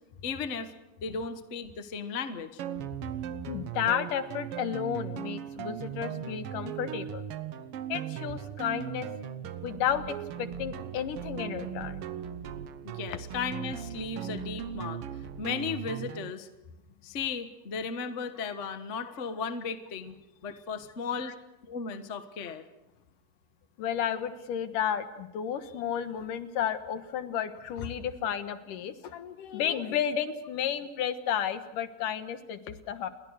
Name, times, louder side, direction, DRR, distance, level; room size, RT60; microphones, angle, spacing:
voice 1, 0.2-0.7 1.0-2.6 12.8-15.0 15.4-16.5 17.0-20.1 20.4-21.4 21.7-22.6, left 5 dB, 60° left, 9 dB, 0.7 m, -35 dB
sound 1, 2.6-16.3, right 9 dB, 70° right, 1.4 m, -38 dB
voice 2, 3.3-7.2 7.9-9.1 9.6-12.0 21.2-21.3 23.8-33.1, left 9 dB, 75° left, 10 dB, 2.9 m, -32 dB
29.0 x 22.0 x 6.5 m, 0.98 s
omnidirectional pair, 3.8 m